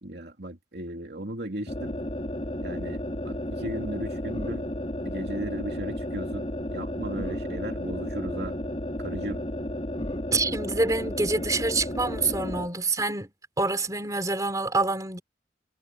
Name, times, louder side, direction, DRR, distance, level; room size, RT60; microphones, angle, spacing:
voice 1, 0.0-2.0 2.6-4.7 5.0-8.6 9.0-9.4, right 1 dB, 60° right, 2.9 m, -36 dB
sound 1, 1.7-12.7, left 1 dB, 35° left, 2.7 m, -33 dB
voice 2, 10.3-13.3 13.6-15.2, right 3 dB, 20° right, 3.8 m, -26 dB
head